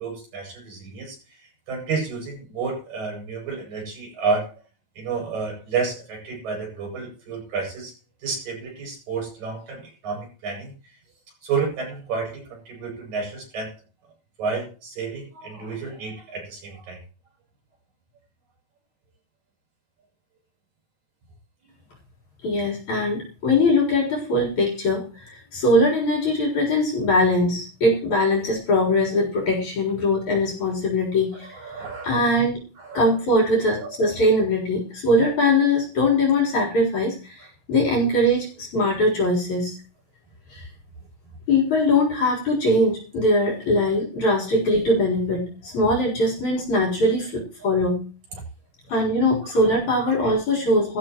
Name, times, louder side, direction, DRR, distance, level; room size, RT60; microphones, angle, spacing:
voice 1, 0.0-4.6 5.0-7.9 8.2-11.0 11.4-13.7 14.4-17.0 31.4-32.2 32.8-33.0 49.4-49.6 50.0-50.4, right 5 dB, 90° right, 1 dB, 9.2 m, -30 dB
voice 2, 22.4-32.6 32.9-39.7 40.5-40.7 41.5-48.0 48.9-51.0, left 1 dB, 60° left, -4 dB, 5.5 m, -21 dB
19.0 x 14.5 x 3.1 m, 0.36 s
omnidirectional pair, 3.9 m